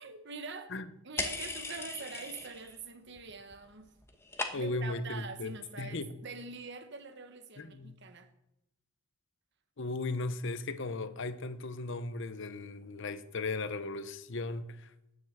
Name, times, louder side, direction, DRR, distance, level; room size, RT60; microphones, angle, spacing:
voice 1, 0.0-0.7 1.0-3.9 4.5-8.3, right 4 dB, 55° right, 1.3 m, -44 dB
sound 1, 1.2-2.8 3.1-3.6 3.9-4.9, left 3 dB, 10° left, 1.2 m, -38 dB
voice 2, 4.5-6.1 7.6-8.0 9.8-14.9, left 3 dB, 60° left, 0.8 m, -37 dB
9.6 x 7.2 x 8.0 m
head